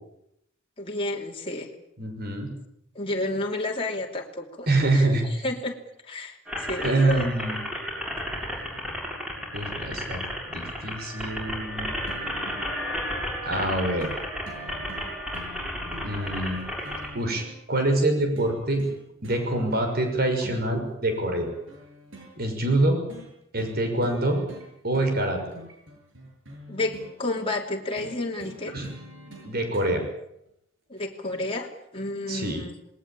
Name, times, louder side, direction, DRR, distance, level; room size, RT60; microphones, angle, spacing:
voice 1, 0.8-1.7 2.9-4.7 4.9-5.1 5.4-5.8 6.0-7.3 26.7-28.7 30.9-32.7, left 2 dB, 25° left, 0 dB, 2.8 m, -31 dB
voice 2, 2.0-2.5 4.7-5.5 6.8-7.6 9.5-10.2 10.5-12.2 13.4-14.1 16.0-16.6 17.1-17.4 17.7-18.8 19.2-21.5 22.4-23.0 23.5-24.4 24.8-25.4 28.7-28.9 29.4-30.0 32.3-32.6, right 2 dB, 50° right, 4 dB, 6.1 m, -25 dB
sound 1, 6.5-17.1, equal, 5° right, 7.2 m, -33 dB
sound 2, 12.1-12.7 13.5-13.7 14.0-14.2 14.5-17.5 18.4-19.0 19.2-20.1 20.4-22.3 23.1-23.3 23.6-23.8 24.0-24.7 24.9-27.1 28.0-29.9 31.0-31.1, equal, 70° right, 7.9 m, -45 dB
20.5 x 19.5 x 8.9 m, 0.78 s
head